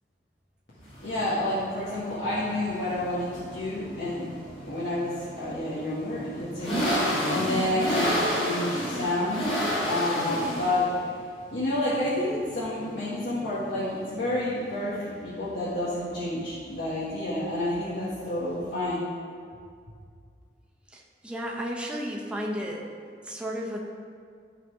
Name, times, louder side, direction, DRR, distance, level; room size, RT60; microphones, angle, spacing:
sound 1, 0.8-18.7, equal, 35° left, 2.3 m, -32 dB
voice 1, 1.0-4.3 4.6-9.5 9.8-10.9 11.5-19.0, left 1 dB, 80° left, -10 dB, 1.8 m, -29 dB
voice 2, 20.9-22.8 23.2-23.8, equal, 5° right, -3 dB, 0.9 m, -33 dB
13.0 x 4.3 x 4.9 m, 2.2 s
head